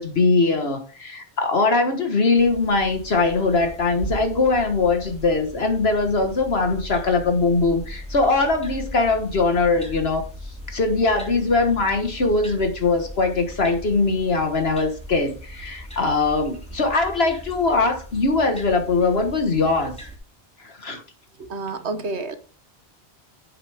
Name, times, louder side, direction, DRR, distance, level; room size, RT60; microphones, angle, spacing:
voice 1, 0.0-10.3 10.7-20.0 20.6-21.0, left 3 dB, 65° left, 5 dB, 1.7 m, -21 dB
sound 1, 2.4-20.2, equal, 5° left, 2.8 m, -38 dB
voice 2, 21.4-22.4, right 3 dB, 80° right, 10 dB, 1.5 m, -29 dB
10.5 x 8.1 x 3.5 m, 0.35 s
omnidirectional pair, 1.1 m